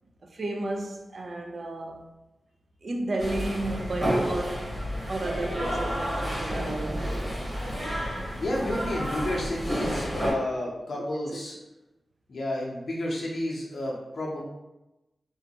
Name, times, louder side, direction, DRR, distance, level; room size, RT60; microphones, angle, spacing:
voice 1, 0.2-2.1 2.8-4.8 5.1-7.3 10.6-10.7 11.3-11.4, right 2 dB, 55° right, 0.3 m, -33 dB
sound 1, 3.2-10.3, equal, 25° right, 1.1 m, -30 dB
voice 2, 8.4-11.5 12.3-14.4, left 1 dB, 65° left, 0.6 m, -31 dB
3.0 x 2.1 x 2.8 m
cardioid pair, 70°, 0 cm